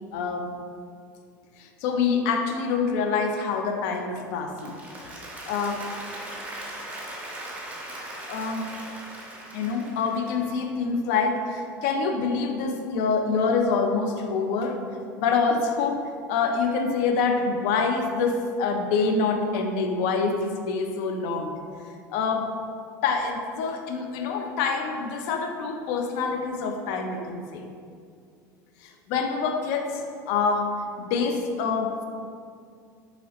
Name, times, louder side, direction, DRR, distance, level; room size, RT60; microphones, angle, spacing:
voice 1, 0.1-0.5 1.6-4.8 5.5-5.9 8.3-8.7 9.5-14.8 15.2-21.5 22.1-22.5 23.0-27.6 28.8-30.7 31.0-32.1, left 4 dB, 50° left, 4 dB, 0.4 m, -26 dB
Applause, 4.4-10.6, right 1 dB, 15° right, 0.8 m, -39 dB
3.8 x 2.9 x 2.8 m, 2.2 s
figure-of-eight pair, 70°, 10 cm